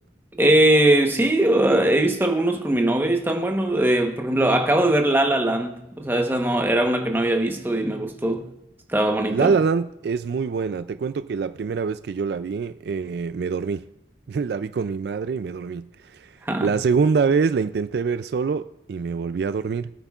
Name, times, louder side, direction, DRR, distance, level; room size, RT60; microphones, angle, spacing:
voice 1, 0.4-8.5 8.9-9.5 16.5-16.7, right 1 dB, 10° right, 1.0 m, -20 dB
voice 2, 9.3-13.9 14.3-19.9, right 5 dB, 60° right, 0.3 m, -25 dB
20.5 x 8.9 x 2.4 m
head